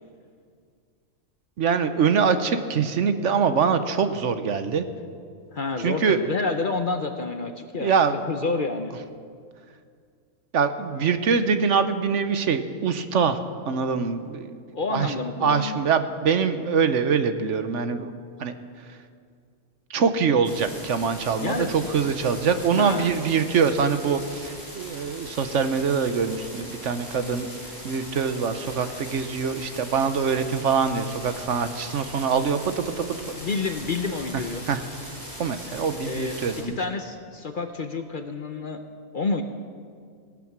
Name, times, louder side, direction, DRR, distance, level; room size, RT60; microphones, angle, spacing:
voice 1, 1.6-4.9 5.8-6.2 7.8-8.3 10.5-13.4 13.7-14.5 14.9-15.1 15.4-18.1 18.4-18.5 19.9-27.5 27.8-33.4 34.7-34.8 35.4-36.8, right 6 dB, 65° right, 10 dB, 1.1 m, -24 dB
voice 2, 5.5-8.9 14.7-15.9 21.4-21.7 22.5-23.1 33.3-34.7 36.1-38.8 39.1-39.4, left 4 dB, 45° left, 7 dB, 0.8 m, -29 dB
sound 1, 20.4-36.6, equal, 15° right, 3.9 m, -40 dB
18.0 x 12.5 x 6.0 m, 2.2 s
omnidirectional pair, 1.4 m